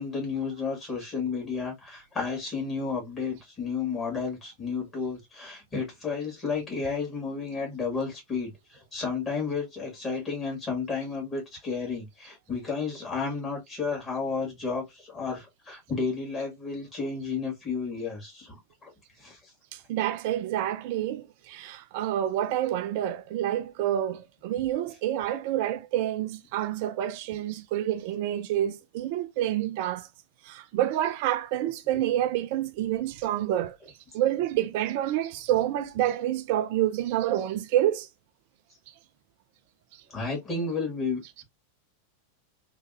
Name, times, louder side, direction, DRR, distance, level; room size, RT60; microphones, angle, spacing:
voice 1, 0.0-8.5 8.9-18.9 19.2-19.4 31.6-31.7 40.1-41.4, left 5 dB, 20° left, 1.9 m, -32 dB
voice 2, 19.7-30.1 30.4-33.8 34.1-38.1, right 12 dB, 50° right, 0.3 m, -28 dB
3.4 x 2.8 x 2.5 m
figure-of-eight pair, 90°, 0 cm